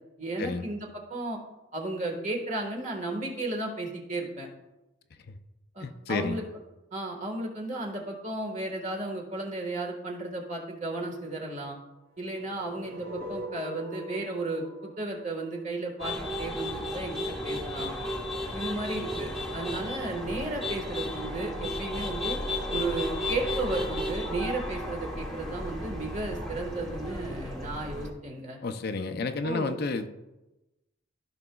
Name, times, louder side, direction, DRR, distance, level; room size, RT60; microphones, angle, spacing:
voice 1, 0.2-1.4 1.7-4.5 5.7-6.4 6.9-11.8 12.2-17.9 18.5-22.4 22.7-28.6 29.4-29.7, right 2 dB, 35° right, 1 dB, 1.5 m, -34 dB
voice 2, 5.8-6.4 28.6-30.1, left 3 dB, 50° left, 8 dB, 0.5 m, -31 dB
sound 1, 12.2-16.3, equal, 70° right, 2.0 m, -42 dB
sound 2, 16.0-28.1, left 1 dB, ahead, 1.2 m, -34 dB
14.5 x 5.9 x 2.3 m, 1.0 s
head